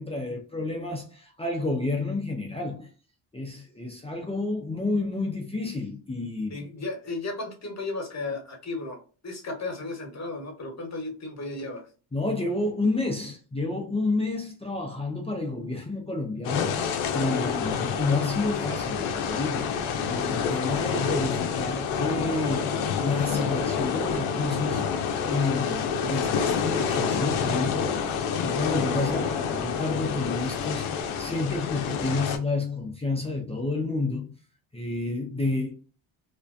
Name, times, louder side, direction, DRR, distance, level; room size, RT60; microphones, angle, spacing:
voice 1, 0.0-2.9 3.3-6.6 12.1-19.7 20.1-24.9 25.3-34.3 34.7-35.7, left 2 dB, 15° left, 0.5 m, -30 dB
voice 2, 6.5-11.9, left 3 dB, 35° left, 1.1 m, -34 dB
sound 1, 16.4-32.4, left 6 dB, 85° left, 0.6 m, -28 dB
2.5 x 2.1 x 2.4 m
cardioid pair, 85°, 48 cm